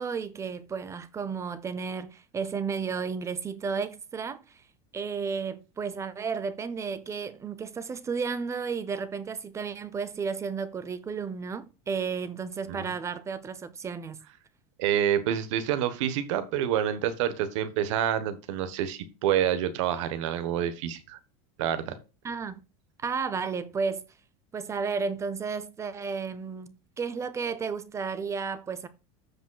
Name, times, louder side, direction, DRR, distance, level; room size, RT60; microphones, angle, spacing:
voice 1, 0.0-4.6 4.9-14.2 22.2-22.6 23.0-24.0 24.5-28.9, right 5 dB, 20° right, 0.6 m, -33 dB
voice 2, 14.8-21.2 21.6-21.9, right 10 dB, 75° right, 1.1 m, -28 dB
14.5 x 5.2 x 2.3 m
supercardioid pair, 145°, 16 cm